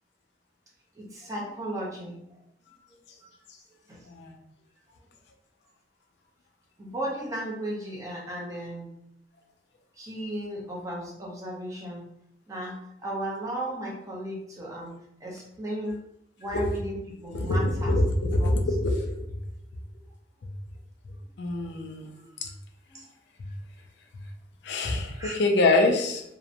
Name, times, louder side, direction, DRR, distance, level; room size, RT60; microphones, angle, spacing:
voice 1, 0.9-2.2 3.2-3.3 3.9-4.1 6.8-8.9 10.0-12.1 12.5-12.8 13.0-16.0 16.4-18.0 18.2-18.5 22.0-22.5 22.9-23.1 24.7-24.9 25.2-25.3, right 1 dB, 20° right, -3 dB, 0.6 m, -35 dB
voice 2, 17.3-19.2 21.4-22.1 24.6-26.2, left 2 dB, 80° left, 3 dB, 0.4 m, -24 dB
2.8 x 2.1 x 2.5 m, 0.77 s
head